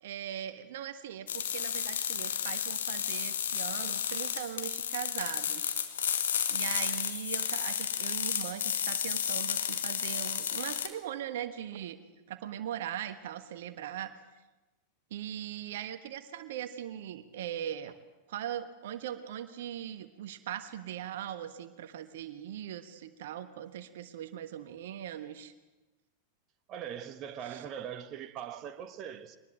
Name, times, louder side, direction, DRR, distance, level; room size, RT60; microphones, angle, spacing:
voice 1, 0.0-5.8 6.5-12.0 12.3-14.1 15.1-18.0 18.3-25.5 27.4-27.6, right 10 dB, 55° right, 1.4 m, -40 dB
sound 1, 1.3-10.9, left 8 dB, 65° left, 1.9 m, -32 dB
voice 2, 26.7-29.4, right 9 dB, 35° right, 1.4 m, -41 dB
23.5 x 20.0 x 7.8 m
figure-of-eight pair, 90°, 0 cm